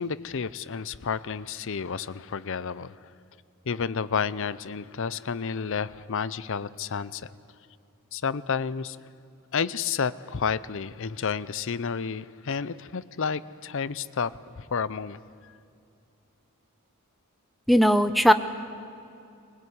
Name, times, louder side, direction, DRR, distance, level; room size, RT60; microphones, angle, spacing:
voice 1, 0.0-3.0 3.7-7.3 8.1-9.0 9.5-15.2, left 6 dB, 60° left, 17 dB, 0.6 m, -31 dB
voice 2, 17.7-18.3, equal, ahead, 9 dB, 0.8 m, -18 dB
20.0 x 20.0 x 9.6 m, 2.6 s
head